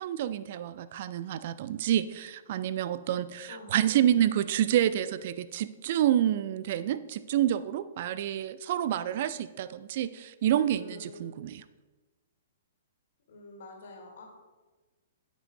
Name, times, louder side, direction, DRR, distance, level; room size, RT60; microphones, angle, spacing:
voice 1, 0.0-11.6, right 11 dB, 45° right, 15 dB, 0.3 m, -28 dB
voice 2, 3.5-4.1 10.6-11.4 13.3-14.2, left 2 dB, 50° left, 0 dB, 2.2 m, -46 dB
15.0 x 6.0 x 2.2 m, 1.3 s
figure-of-eight pair, 110°, 0 cm